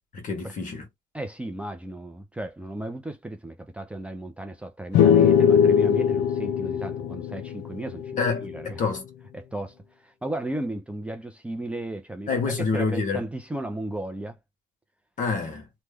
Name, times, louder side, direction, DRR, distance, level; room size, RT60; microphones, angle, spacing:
voice 1, 0.1-0.9 8.2-9.0 12.3-13.2 15.2-15.7, left 4 dB, 50° left, 1.3 m, -27 dB
voice 2, 1.1-8.8 9.3-14.4, right 1 dB, 5° right, 0.4 m, -35 dB
sound 1, 4.9-8.5, left 8 dB, 85° left, 0.6 m, -21 dB
3.1 x 2.2 x 3.3 m
cardioid pair, 110°, 17 cm